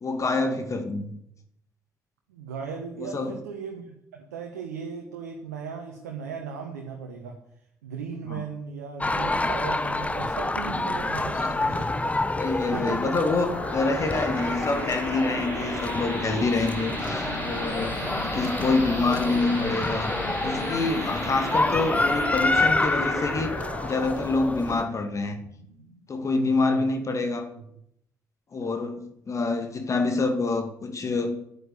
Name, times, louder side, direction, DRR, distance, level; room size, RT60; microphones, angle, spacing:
voice 1, 0.0-1.1 3.0-3.4 8.3-8.4 11.3-11.6 12.4-20.1 20.4-23.5 23.8-25.4 26.1-27.5 28.5-31.4, left 3 dB, 35° left, 6 dB, 2.5 m, -27 dB
voice 2, 2.3-7.4 7.8-12.1 12.7-13.1 26.2-26.9, right 6 dB, 75° right, 3 dB, 1.4 m, -36 dB
sound 1, 9.0-24.8, left 2 dB, 15° left, 1.1 m, -28 dB
sound 2, 12.8-26.0, equal, 90° left, 5.0 m, -35 dB
9.9 x 9.5 x 8.1 m, 0.76 s
figure-of-eight pair, 45°, 9 cm